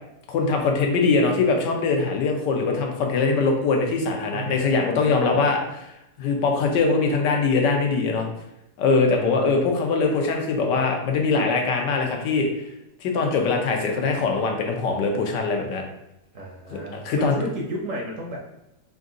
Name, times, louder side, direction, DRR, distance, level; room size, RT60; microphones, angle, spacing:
voice 1, 0.3-5.9 6.2-8.3 8.8-12.5 13.0-15.8 16.7-17.4, left 4 dB, 80° left, 2 dB, 1.4 m, -22 dB
voice 2, 4.3-5.5 9.0-9.6 16.3-18.4, right 1 dB, 60° right, -2 dB, 0.9 m, -33 dB
3.8 x 2.6 x 3.7 m, 0.84 s
omnidirectional pair, 1.9 m